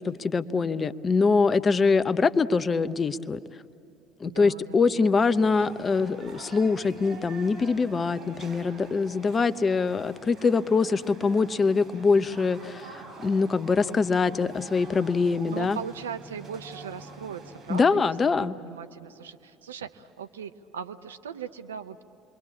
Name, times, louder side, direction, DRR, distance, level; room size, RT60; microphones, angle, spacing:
voice 1, 0.0-3.4 4.2-12.9 13.2-15.8 17.7-18.5, left 4 dB, 30° left, 14 dB, 0.8 m, -24 dB
voice 2, 4.2-5.8 12.8-13.1 15.5-22.0, right 7 dB, 85° right, 10 dB, 0.7 m, -40 dB
sound 1, 5.1-17.8, right 3 dB, 55° right, 5.8 m, -46 dB
28.0 x 22.5 x 8.6 m, 2.9 s
hypercardioid pair, 65°, 0 cm